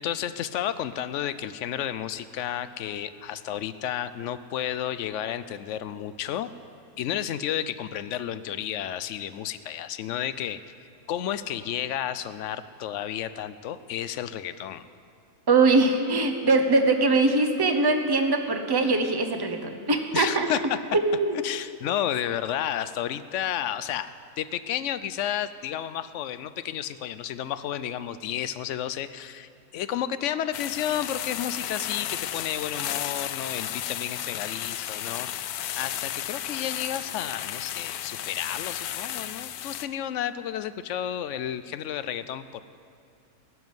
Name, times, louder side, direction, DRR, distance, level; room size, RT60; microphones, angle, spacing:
voice 1, 0.0-6.5 7.0-10.6 11.1-14.9 20.1-20.8 21.4-42.6, left 10 dB, 65° left, 14 dB, 0.8 m, -32 dB
voice 2, 15.5-20.5 20.9-21.4, right 3 dB, 20° right, 6 dB, 0.7 m, -22 dB
sound 1, 30.5-39.9, left 11 dB, 85° left, 1.1 m, -33 dB
16.5 x 7.2 x 9.5 m, 2.4 s
omnidirectional pair, 1.6 m